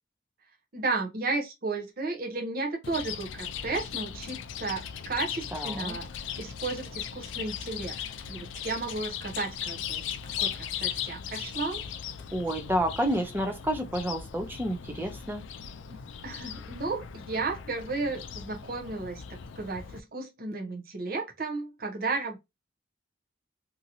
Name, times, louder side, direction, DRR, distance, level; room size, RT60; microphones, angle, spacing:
voice 1, 0.7-6.1 6.4-7.9 8.3-10.0 10.4-11.8 15.9-16.0 16.2-19.2 19.6-22.4, right 3 dB, 50° right, 0.7 m, -33 dB
Chirp tweet, 2.8-20.0, left 8 dB, 80° left, 0.4 m, -38 dB
voice 2, 5.5-6.0 12.3-15.4, equal, 10° right, 0.6 m, -30 dB
2.9 x 2.6 x 2.7 m
head